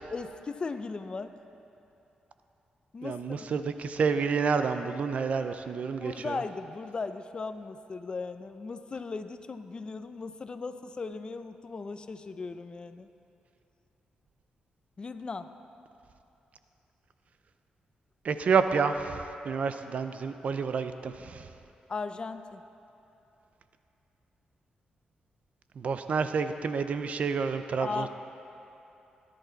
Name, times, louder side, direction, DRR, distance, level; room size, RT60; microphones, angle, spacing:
voice 1, 0.1-1.3 2.9-3.5 6.0-13.1 15.0-15.5 21.9-22.6 27.8-28.1, left 4 dB, 35° left, 10 dB, 0.6 m, -37 dB
voice 2, 3.0-6.4 18.2-21.5 25.8-28.1, right 5 dB, 55° right, 9 dB, 0.5 m, -29 dB
17.5 x 10.5 x 4.0 m, 2.9 s
cardioid pair, 110°, 3 cm